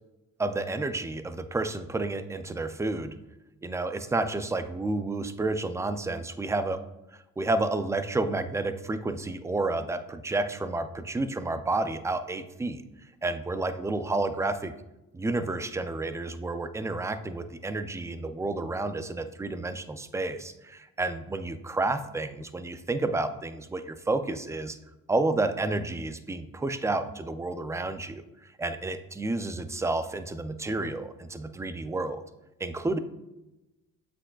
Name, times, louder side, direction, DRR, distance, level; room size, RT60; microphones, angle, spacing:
voice 1, 0.4-3.2 3.6-6.8 7.4-12.8 13.2-14.7 15.1-24.8 25.1-28.2 28.6-32.2 32.6-33.0, right 2 dB, 10° right, 10 dB, 0.3 m, -30 dB
7.6 x 6.2 x 2.3 m, 0.96 s
cardioid pair, 110°, 34 cm